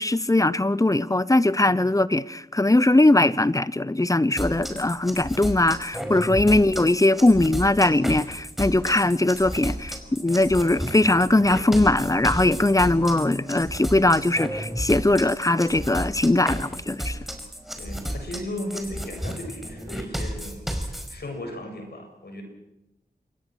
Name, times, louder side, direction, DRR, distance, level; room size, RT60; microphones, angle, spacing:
voice 1, 0.0-17.2, left 2 dB, 20° left, 0.9 m, -20 dB
sound 1, 4.4-21.1, equal, ahead, 5.2 m, -33 dB
voice 2, 17.8-22.4, left 1 dB, 75° left, 7.3 m, -36 dB
27.5 x 22.5 x 6.3 m
cardioid pair, 55°, 17 cm